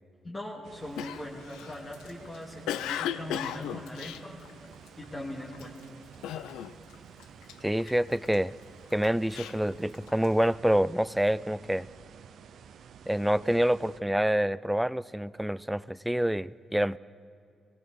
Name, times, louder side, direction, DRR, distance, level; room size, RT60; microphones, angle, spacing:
voice 1, 0.2-4.4 5.0-5.8, left 1 dB, 25° left, -4 dB, 2.3 m, -40 dB
sound 1, 0.6-14.0, right 7 dB, 75° right, 0.6 m, -51 dB
Cough, 1.0-5.0 5.5-5.8 6.2-6.9 7.2-8.4 8.9-10.4, left 11 dB, 90° left, 0.4 m, -36 dB
voice 2, 7.6-8.5 8.9-11.9 13.1-17.0, equal, 5° right, 19 dB, 0.4 m, -27 dB
18.0 x 17.5 x 4.6 m, 2.4 s
supercardioid pair, 60°, 0 cm